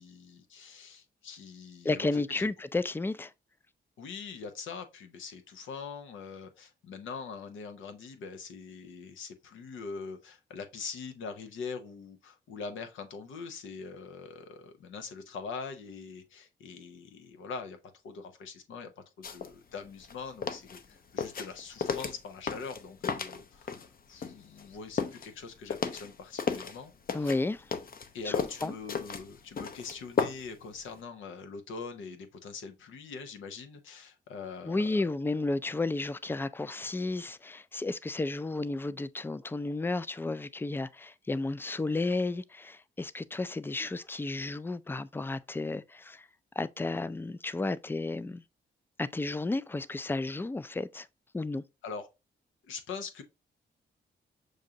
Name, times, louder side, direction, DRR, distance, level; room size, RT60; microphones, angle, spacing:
voice 1, 0.0-2.5 4.0-17.8 18.0-18.9 19.2-26.9 27.2-27.3 28.1-35.1 51.8-52.1 52.6-53.2, left 5 dB, 90° left, 0.8 m, -43 dB
voice 2, 1.8-3.3 27.1-27.7 28.2-28.3 28.6-28.7 34.6-46.3 46.6-48.4 49.0-51.1 51.3-51.6, left 2 dB, 10° left, 0.3 m, -32 dB
sound 1, 19.2-19.5 19.9-23.9 24.2-26.8 27.1-30.6 30.9-31.0, left 6 dB, 50° left, 0.6 m, -34 dB
6.3 x 2.5 x 2.7 m
cardioid pair, 65°, 19 cm